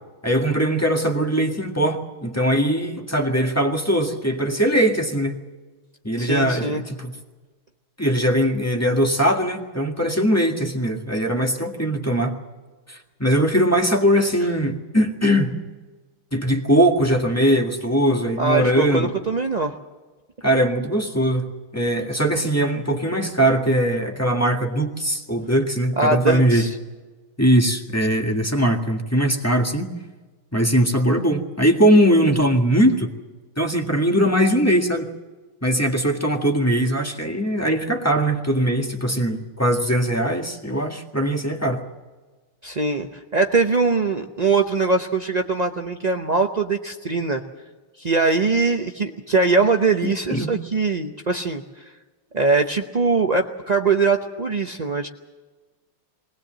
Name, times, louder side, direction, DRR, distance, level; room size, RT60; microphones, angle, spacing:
voice 1, 0.2-5.3 6.0-7.1 8.0-12.4 12.9-15.5 16.3-19.1 20.4-21.5 21.7-26.6 27.4-29.9 30.5-33.1 33.6-35.1 35.6-41.8 50.3-50.5, equal, 10° left, 3 dB, 1.6 m, -20 dB
voice 2, 6.2-6.8 18.4-19.7 26.0-26.7 42.6-47.4 48.0-51.6 52.3-55.1, right 4 dB, 55° right, 4 dB, 0.4 m, -21 dB
21.5 x 19.5 x 7.6 m, 1.3 s
omnidirectional pair, 2.2 m